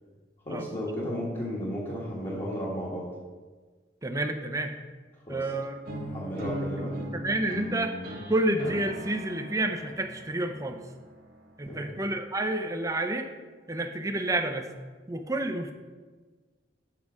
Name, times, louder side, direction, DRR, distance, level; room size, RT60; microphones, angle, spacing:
voice 1, 0.4-3.1 5.3-5.5 6.1-6.9 11.7-11.9, equal, 30° left, -6 dB, 1.4 m, -33 dB
voice 2, 4.0-4.7 5.3-5.8 7.1-8.0 8.3-10.8 11.6-13.3 13.7-14.7 15.1-15.7, right 1 dB, 20° right, 5 dB, 0.5 m, -29 dB
sound 1, 5.9-11.8, equal, 55° right, 1.1 m, -39 dB
7.4 x 4.8 x 6.1 m, 1.4 s
head